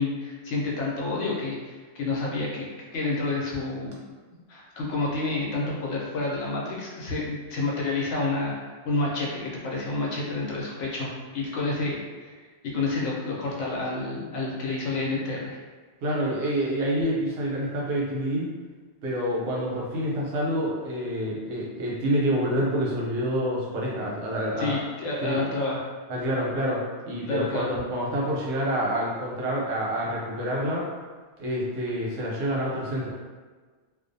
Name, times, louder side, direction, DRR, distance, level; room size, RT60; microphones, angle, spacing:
voice 1, 0.0-2.7 2.9-4.0 4.5-8.5 8.8-12.0 12.6-15.6 24.6-25.9 27.3-27.8, left 3 dB, 80° left, -4 dB, 1.0 m, -29 dB
voice 2, 16.0-18.5 19.0-24.8 25.2-25.4 26.1-30.9 31.4-33.1, equal, 85° right, -4 dB, 1.1 m, -27 dB
2.4 x 2.2 x 2.6 m, 1.4 s
omnidirectional pair, 1.3 m